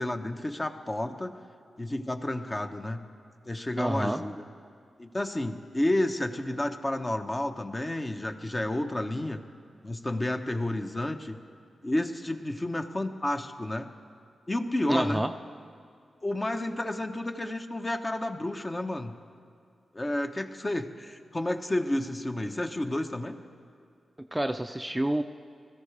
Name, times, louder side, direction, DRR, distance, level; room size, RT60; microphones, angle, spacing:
voice 1, 0.0-1.4 1.8-3.0 3.5-4.4 5.0-9.4 9.8-11.4 11.8-13.9 14.5-15.2 16.2-19.1 19.9-23.4, left 1 dB, 30° left, 5 dB, 1.0 m, -31 dB
voice 2, 3.8-4.2 14.9-15.3 24.3-25.2, right 1 dB, 15° right, 7 dB, 0.5 m, -28 dB
20.5 x 13.5 x 3.4 m, 2.4 s
cardioid pair, 50°, 0 cm